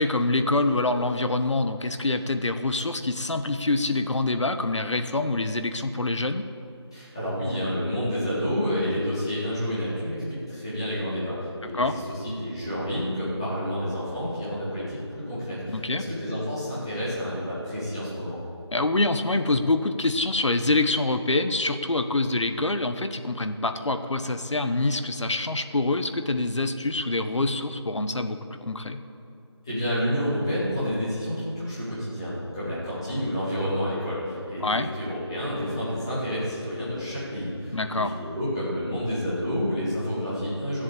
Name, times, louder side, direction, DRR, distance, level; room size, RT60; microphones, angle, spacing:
voice 1, 0.0-6.4 11.7-12.0 15.7-16.0 18.7-29.0 34.6-34.9 37.7-38.1, left 2 dB, 85° left, 8 dB, 1.2 m, -25 dB
voice 2, 6.9-18.4 29.6-40.8, equal, 10° left, -11 dB, 2.4 m, -29 dB
14.0 x 7.6 x 8.6 m, 2.6 s
figure-of-eight pair, 180°, 15 cm